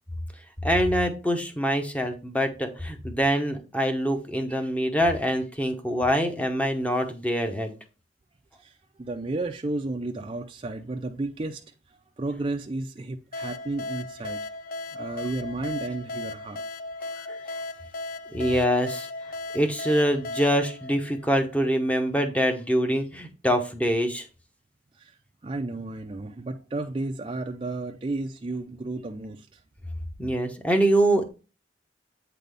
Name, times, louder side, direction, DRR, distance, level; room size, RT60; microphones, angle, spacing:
voice 1, 0.6-7.7 17.3-17.4 18.3-19.1 19.5-24.3 30.2-31.3, equal, 10° left, 0.8 m, -24 dB
voice 2, 8.6-14.4 14.9-16.6 24.9-29.6, right 2 dB, 30° right, 0.4 m, -33 dB
sound 1, 13.3-21.8, left 2 dB, 50° left, 0.4 m, -36 dB
8.2 x 4.0 x 3.4 m
head